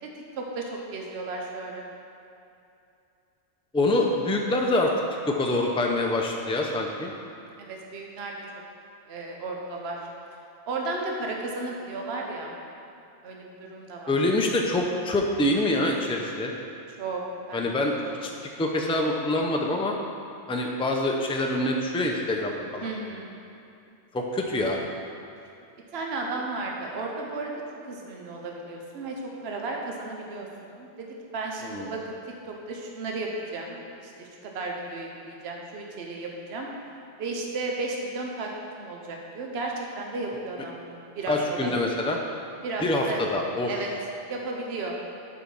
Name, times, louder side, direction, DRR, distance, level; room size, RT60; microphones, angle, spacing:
voice 1, 0.4-1.9 7.6-8.3 9.1-10.0 10.7-12.5 13.2-14.1 17.0-17.2 17.5-17.7 18.0-18.1 22.8-23.3 25.9-27.5 27.9-29.1 29.4-31.1 31.3-32.2 32.5-33.8 34.2-36.7 37.2-38.5 38.8-41.7 42.6-43.2 43.7-43.9 44.3-44.9, right 3 dB, 65° right, 0 dB, 1.1 m, -34 dB
voice 2, 3.7-4.9 5.3-7.1 14.1-16.5 17.5-18.3 18.6-19.9 20.5-22.9 24.1-24.9 31.6-31.9 41.3-42.2 42.8-43.7, left 1 dB, 10° left, 1 dB, 0.4 m, -25 dB
8.4 x 4.7 x 5.5 m, 2.7 s
omnidirectional pair, 1.2 m